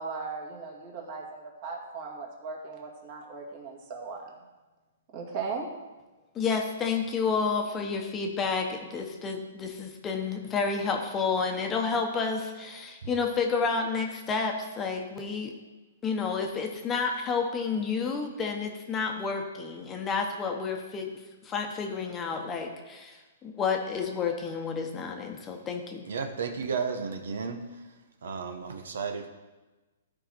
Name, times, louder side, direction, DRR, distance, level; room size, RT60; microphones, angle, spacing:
voice 1, 0.0-4.3 5.1-5.7, right 4 dB, 40° right, 0 dB, 2.1 m, -37 dB
voice 2, 6.3-15.5 16.0-21.1 21.4-26.0, left 5 dB, 15° left, 3 dB, 1.0 m, -30 dB
voice 3, 26.0-27.8 28.2-29.3, right 5 dB, 80° right, 6 dB, 1.0 m, -33 dB
14.0 x 4.8 x 4.4 m, 1.2 s
hypercardioid pair, 150°, 0 cm